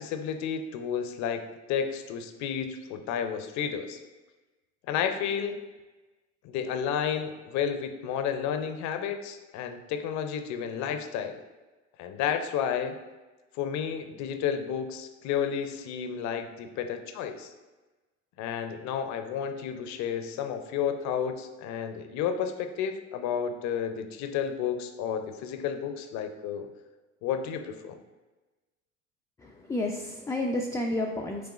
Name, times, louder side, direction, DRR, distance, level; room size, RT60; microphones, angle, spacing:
voice 1, 0.0-1.4 1.7-4.0 4.9-5.6 6.4-11.4 12.0-13.0 13.5-17.5 18.4-26.7 27.2-28.0, left 8 dB, 50° left, 8 dB, 0.6 m, -31 dB
voice 2, 29.4-31.5, left 1 dB, 10° left, 0 dB, 0.3 m, -31 dB
6.2 x 3.5 x 2.4 m, 1.2 s
hypercardioid pair, 65°, 36 cm